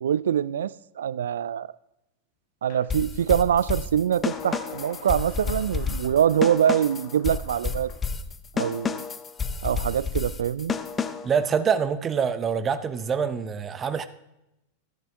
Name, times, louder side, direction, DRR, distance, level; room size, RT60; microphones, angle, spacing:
voice 1, 0.0-1.7 2.6-7.9 8.5-9.0 9.6-10.7, right 9 dB, 70° right, 0.3 m, -24 dB
sound 1, 2.7-2.9 4.3-8.1, left 7 dB, 50° left, 1.6 m, -46 dB
sound 2, 2.9-11.4, left 5 dB, 20° left, 0.7 m, -30 dB
voice 2, 11.2-14.1, right 6 dB, 25° right, 0.7 m, -25 dB
12.5 x 10.0 x 3.5 m
figure-of-eight pair, 90°, 0 cm